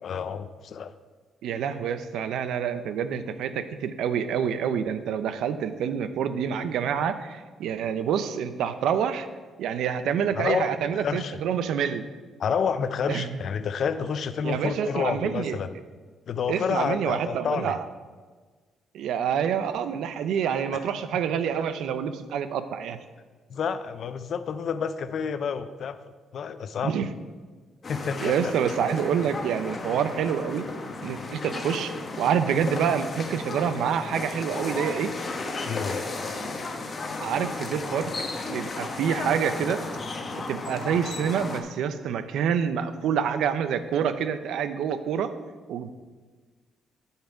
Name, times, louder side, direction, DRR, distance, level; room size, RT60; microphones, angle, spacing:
voice 1, 0.0-0.9 10.4-11.4 12.4-15.7 16.3-17.8 23.5-26.0 26.3-26.9 27.9-28.5 35.6-36.1, left 6 dB, 55° left, 12 dB, 0.5 m, -29 dB
voice 2, 1.4-9.3 9.6-12.0 13.1-13.3 14.4-15.6 16.5-17.8 18.9-23.0 26.8-27.1 28.2-30.7 31.0-31.9 32.2-35.1 37.2-38.1 38.5-39.8 40.5-45.3 45.7-45.9, right 8 dB, 80° right, 11 dB, 0.6 m, -27 dB
sound 1, 27.8-41.6, left 3 dB, 35° left, 1.1 m, -34 dB
10.5 x 5.7 x 4.6 m, 1.4 s
cardioid pair, 120°, 0 cm